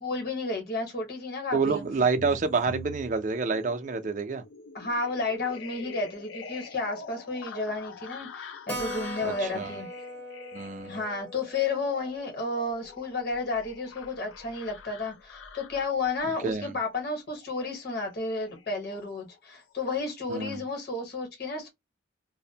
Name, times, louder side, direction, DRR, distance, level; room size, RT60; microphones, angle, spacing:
voice 1, 0.0-1.8 4.7-9.9 10.8-21.7, left 3 dB, 50° left, 1.0 m, -32 dB
voice 2, 1.5-4.4 9.2-9.8 10.5-11.0 16.4-16.7 20.3-20.6, right 4 dB, 40° right, 0.4 m, -28 dB
sound 1, 1.6-19.4 19.7-20.6, left 3 dB, 85° left, 0.5 m, -45 dB
Keyboard (musical), 8.7-13.7 14.0-14.1 14.4-14.5 14.8-14.9 15.4-15.8, equal, 10° left, 0.6 m, -41 dB
2.5 x 2.0 x 2.7 m
head